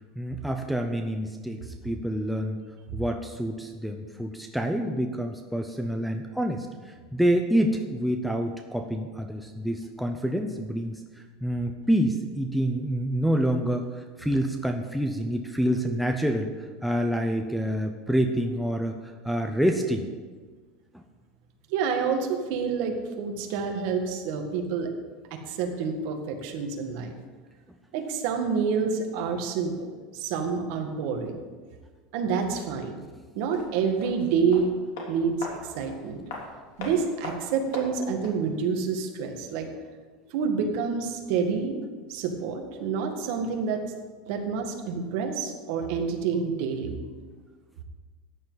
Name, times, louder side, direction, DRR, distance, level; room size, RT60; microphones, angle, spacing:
voice 1, 0.2-2.6 2.9-11.0 11.4-20.0 20.9-21.0, equal, ahead, 2 dB, 0.6 m, -27 dB
voice 2, 21.7-24.9 25.3-27.1 27.9-31.4 32.1-33.0 33.3-34.8 35.1-36.2 36.8-39.7 40.3-41.8 42.1-43.8 44.3-47.0, right 5 dB, 55° right, 4 dB, 1.7 m, -28 dB
sound 1, 33.5-38.5 38.7-38.8, left 3 dB, 80° left, 3.3 m, -40 dB
14.0 x 9.5 x 4.0 m, 1.5 s
supercardioid pair, 165°, 0 cm